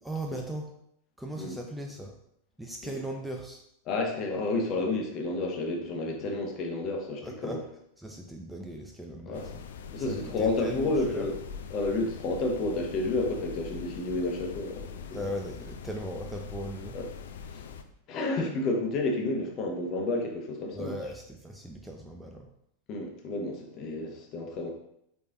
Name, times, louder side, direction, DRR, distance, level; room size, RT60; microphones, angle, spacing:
voice 1, 0.0-0.7 1.2-2.1 2.6-3.6 7.2-7.6 8.0-9.6 10.0-11.3 15.1-17.0 20.7-22.5, right 1 dB, 5° right, 1 dB, 0.5 m, -38 dB
voice 2, 3.9-7.6 9.3-9.5 9.9-11.3 11.7-15.2 16.9-17.1 17.5-17.6 18.1-21.0 22.9-24.7, left 2 dB, 35° left, 2 dB, 0.9 m, -30 dB
sound 1, 9.3-17.8, left 6 dB, 60° left, 0.4 m, -43 dB
4.9 x 4.1 x 2.4 m, 0.75 s
figure-of-eight pair, 90°, 0 cm